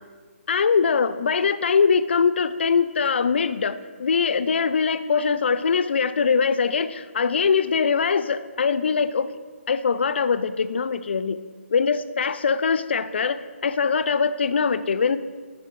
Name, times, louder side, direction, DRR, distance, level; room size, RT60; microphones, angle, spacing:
voice 1, 0.5-9.3 9.7-11.4 11.7-15.2, left 5 dB, 55° left, 14 dB, 0.4 m, -22 dB
11.5 x 6.6 x 3.1 m, 1.5 s
hypercardioid pair, 160°, 7 cm